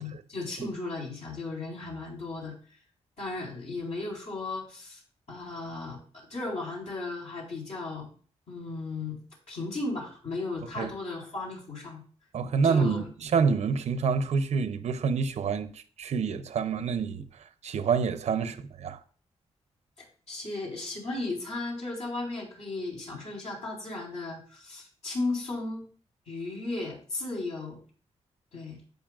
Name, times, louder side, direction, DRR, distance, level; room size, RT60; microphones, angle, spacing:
voice 1, 0.0-2.5 3.2-5.0 5.3-6.0 6.3-8.1 8.5-9.2 9.5-12.0 12.6-13.0 20.0-25.8 26.3-27.8 28.5-28.8, left 2 dB, 70° left, 4.3 m, -35 dB
voice 2, 12.3-15.7 16.0-17.3 17.6-19.0, right 5 dB, 70° right, 0.7 m, -27 dB
16.0 x 5.4 x 2.4 m
wide cardioid pair, 125°, 12 cm